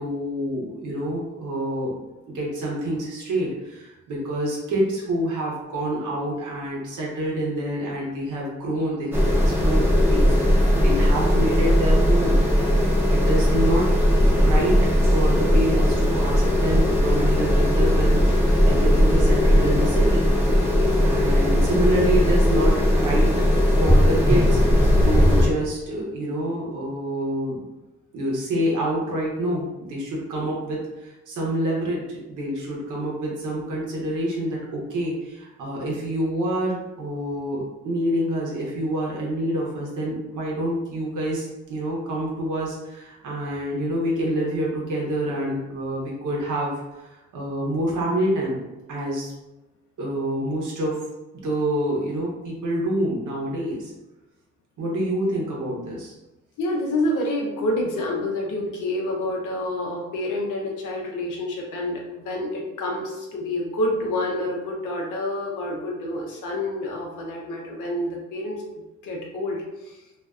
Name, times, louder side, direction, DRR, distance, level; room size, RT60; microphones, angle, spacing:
voice 1, 0.0-2.0 2.3-12.4 13.1-13.9 14.4-20.3 21.0-23.3 23.8-27.6 28.1-48.6 48.9-49.3 50.0-51.0 51.3-53.9 54.8-56.1, right 1 dB, 75° right, -3 dB, 0.9 m, -27 dB
sound 1, 9.1-25.5, equal, 5° right, 0.7 m, -18 dB
voice 2, 56.6-70.0, left 1 dB, 80° left, -1 dB, 0.7 m, -28 dB
2.5 x 2.2 x 2.4 m, 1.0 s
supercardioid pair, 45°, 31 cm